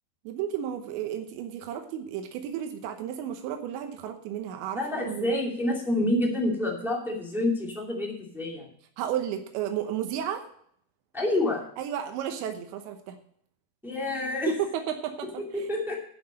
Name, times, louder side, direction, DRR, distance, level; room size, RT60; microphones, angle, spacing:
voice 1, 0.2-5.3 9.0-10.4 11.8-13.2 14.5-15.7, right 10 dB, 90° right, 6 dB, 3.3 m, -33 dB
voice 2, 4.7-8.7 11.1-11.7 13.8-14.5 15.5-16.0, left 1 dB, ahead, -2 dB, 0.9 m, -28 dB
11.0 x 6.2 x 7.6 m, 0.64 s
omnidirectional pair, 5.0 m